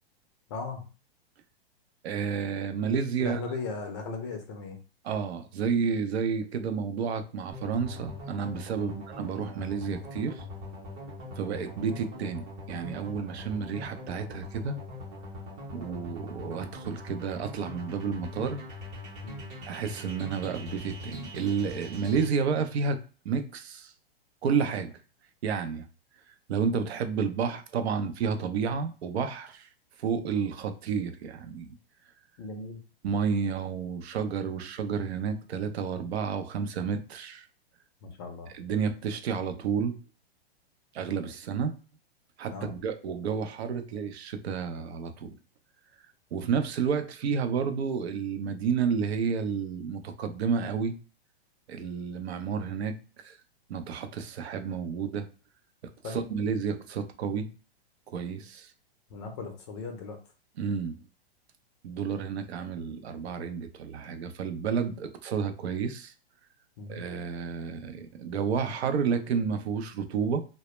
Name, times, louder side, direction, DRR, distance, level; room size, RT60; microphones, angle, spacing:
voice 1, 0.5-0.9 3.2-4.8 8.7-9.0 19.2-19.5 32.4-32.8 38.0-38.5 42.5-42.7 56.0-56.3 59.1-60.2 66.8-67.0, left 4 dB, 30° left, 0.4 m, -37 dB
voice 2, 2.0-3.4 5.0-10.4 11.4-14.8 15.7-18.6 19.7-23.0 23.2-23.9 24.4-24.9 25.4-25.9 26.5-29.7 30.0-31.7 33.0-37.4 38.5-40.0 40.9-41.7 42.4-45.3 46.3-50.9 51.7-53.0 53.2-53.3 53.7-55.3 56.1-57.5 58.1-58.7 60.6-61.0 61.8-66.1 66.9-70.5, right 6 dB, 80° right, 0.6 m, -30 dB
sound 1, 7.5-22.3, left 1 dB, 25° right, 0.7 m, -42 dB
2.1 x 2.0 x 3.0 m
hypercardioid pair, 150°, 31 cm